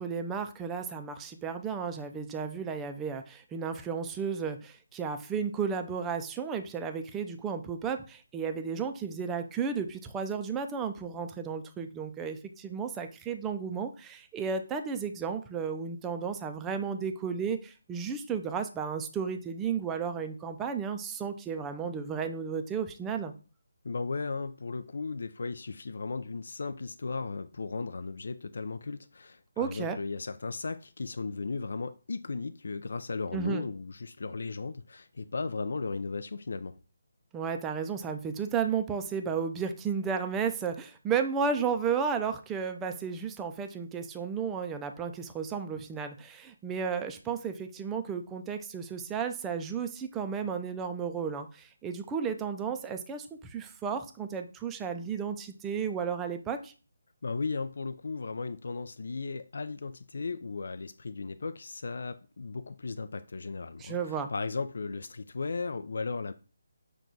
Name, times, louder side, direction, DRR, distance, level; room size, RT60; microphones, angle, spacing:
voice 1, 0.0-23.3 29.6-30.0 33.3-33.6 37.3-56.7 63.8-64.3, right 6 dB, 10° right, 0.4 m, -33 dB
voice 2, 23.8-36.7 57.2-66.3, left 4 dB, 65° left, 0.3 m, -36 dB
6.0 x 2.3 x 3.8 m
figure-of-eight pair, 160°, 0 cm